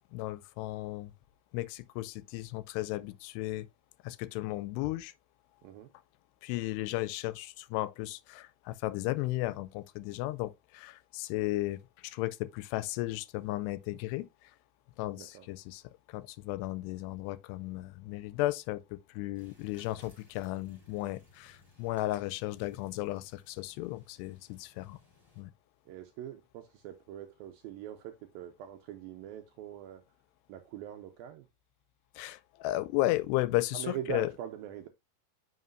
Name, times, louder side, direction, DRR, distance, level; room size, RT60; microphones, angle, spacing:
voice 1, 0.1-1.1 1.5-3.7 4.0-5.1 6.4-14.3 15.0-15.8 16.1-25.0 25.4-25.5 32.2-34.3, left 17 dB, 85° left, 2.6 m, -34 dB
voice 2, 15.2-15.5 25.9-30.0 30.5-31.5 33.7-34.9, right 11 dB, 80° right, 2.2 m, -42 dB
sound 1, 19.3-25.4, left 3 dB, 5° left, 3.6 m, -62 dB
9.4 x 5.8 x 2.5 m
omnidirectional pair, 4.8 m